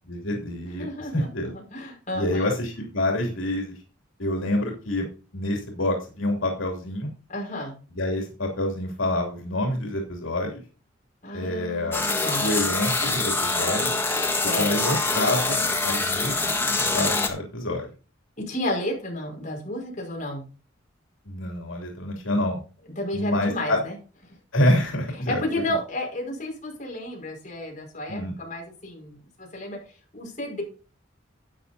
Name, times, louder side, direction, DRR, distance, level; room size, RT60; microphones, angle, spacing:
voice 1, 0.1-0.9 1.1-1.5 2.1-3.8 4.2-5.1 5.3-7.1 7.9-10.6 11.3-12.1 12.4-13.9 14.6-16.6 16.9-17.9 21.2-22.6 23.1-23.8 24.5-25.4 28.1-28.3, left 1 dB, 80° left, 1 dB, 2.9 m, -27 dB
voice 2, 0.8-1.3 1.5-2.5 7.3-7.8 11.2-12.5 14.4-14.8 18.4-20.5 23.0-24.0 25.3-29.8 30.1-30.6, left 1 dB, 40° left, 0 dB, 5.4 m, -32 dB
sound 1, 11.9-17.3, left 3 dB, 10° left, 1.5 m, -25 dB
12.5 x 8.8 x 2.7 m, 0.35 s
head